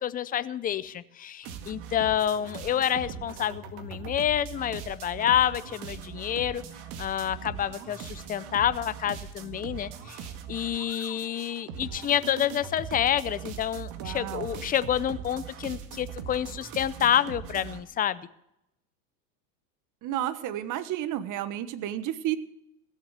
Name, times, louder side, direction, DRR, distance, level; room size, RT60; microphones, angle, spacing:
voice 1, 0.0-6.6 7.0-10.2 10.5-18.3, left 10 dB, 20° left, 15 dB, 0.5 m, -28 dB
sound 1, 1.4-17.8, right 8 dB, 60° right, 2.0 m, -41 dB
voice 2, 14.0-14.5 20.0-22.4, right 12 dB, 40° right, 14 dB, 1.1 m, -31 dB
16.5 x 7.4 x 8.1 m, 0.81 s
hypercardioid pair, 110°, 49 cm